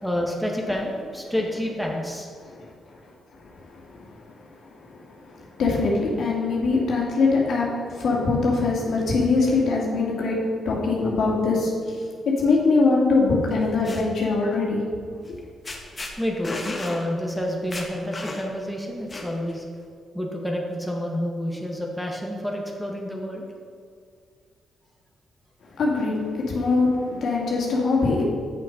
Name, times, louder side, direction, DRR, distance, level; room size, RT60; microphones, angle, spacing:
voice 1, 0.0-2.3 16.2-19.6 20.1-23.4, equal, ahead, -1 dB, 1.7 m, -29 dB
voice 2, 3.5-4.2 4.7-10.4 10.6-12.1 12.4-14.8 25.8-28.2, left 3 dB, 70° left, -3 dB, 2.3 m, -23 dB
sound 1, 13.5-14.0 15.3-15.4 15.6-16.1 16.4-17.0 17.4-17.5 17.7-18.6 19.1-19.6, left 2 dB, 30° left, 1.5 m, -33 dB
8.3 x 6.4 x 5.4 m, 2.2 s
supercardioid pair, 60°, 0 cm